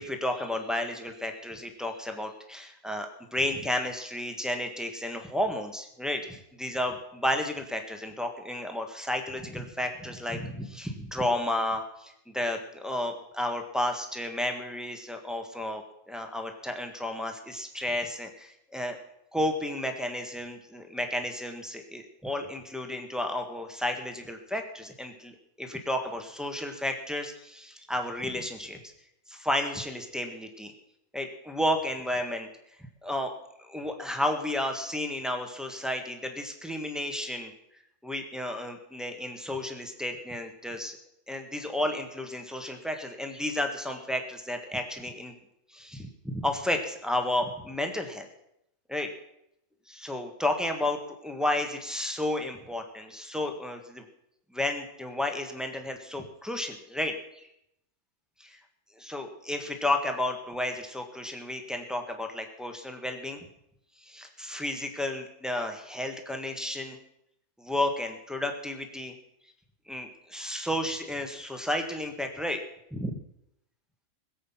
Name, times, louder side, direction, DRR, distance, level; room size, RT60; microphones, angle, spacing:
voice 1, 0.0-19.0 19.3-25.3 25.6-28.8 29.3-30.7 31.1-32.5 33.0-33.3 33.6-37.5 38.0-41.0 41.3-45.3 45.7-48.3 48.9-49.1 49.9-54.0 54.5-57.1 57.4-57.5 58.4-58.6 59.0-63.4 64.0-67.0 67.6-69.1 69.9-72.6 72.9-73.2, left 1 dB, ahead, 3 dB, 1.7 m, -32 dB
21.0 x 8.1 x 5.8 m, 0.78 s
omnidirectional pair, 1.5 m